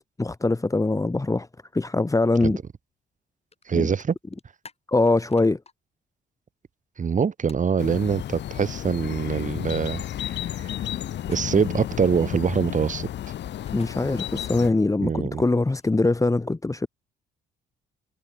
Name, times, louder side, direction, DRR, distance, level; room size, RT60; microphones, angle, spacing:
voice 1, 0.2-1.5 1.7-2.6 3.7-3.9 4.9-5.6 13.7-16.9, left 2 dB, 15° left, 1.9 m, -22 dB
sound 1, 3.5-3.6 3.9-5.7 7.5-7.7 11.2-11.8 13.5-13.9 15.3-16.2, left 4 dB, 30° left, 4.7 m, -50 dB
voice 2, 3.7-4.2 7.0-10.8 11.3-13.1 15.0-15.4, right 6 dB, 40° right, 2.1 m, -24 dB
sound 2, 7.8-14.7, left 11 dB, 60° left, 0.9 m, -32 dB
cardioid pair, 90°, 20 cm